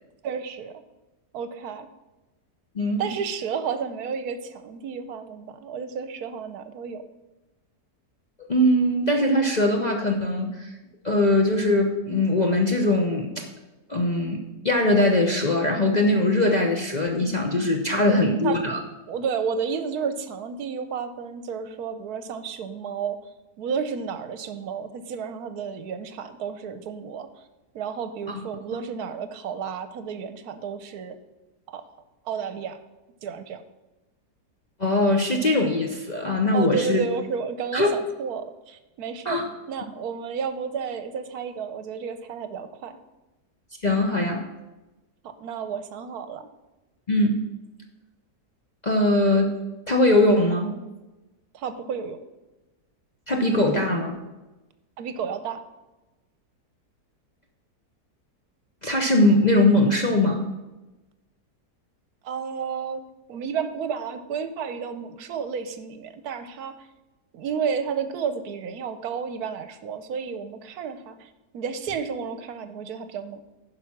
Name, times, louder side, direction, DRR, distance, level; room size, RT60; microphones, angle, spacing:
voice 1, 0.2-0.7 1.3-1.9 3.0-7.0 17.9-18.2 18.4-18.6 19.1-23.2 23.6-27.3 27.7-31.2 31.7-31.8 32.3-32.8 33.2-33.6 36.5-39.4 39.7-43.0 45.4-46.5 51.5-52.2 55.0-55.6 62.2-63.0 63.3-66.7 67.3-71.3 71.5-73.4, right 6 dB, 75° right, 10 dB, 1.2 m, -31 dB
voice 2, 8.4-10.7 11.0-13.5 13.9-18.8 28.3-28.4 34.8-37.0 37.7-37.9 39.2-39.5 43.8-44.4 47.1-47.4 48.8-49.5 49.9-50.8 53.3-54.2 58.8-60.5, left 1 dB, 40° left, 1 dB, 0.7 m, -21 dB
11.0 x 5.0 x 5.8 m, 1.1 s
omnidirectional pair, 1.7 m